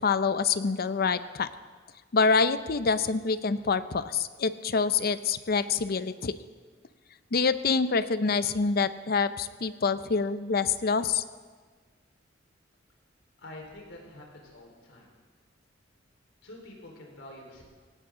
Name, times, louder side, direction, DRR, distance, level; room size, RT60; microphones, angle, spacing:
voice 1, 0.0-1.5 2.1-6.3 7.3-11.2, left 5 dB, 55° left, 13 dB, 0.6 m, -26 dB
voice 2, 13.4-15.1 16.4-17.6, left 1 dB, 90° left, 0 dB, 4.3 m, -47 dB
18.0 x 17.0 x 3.8 m, 1.5 s
head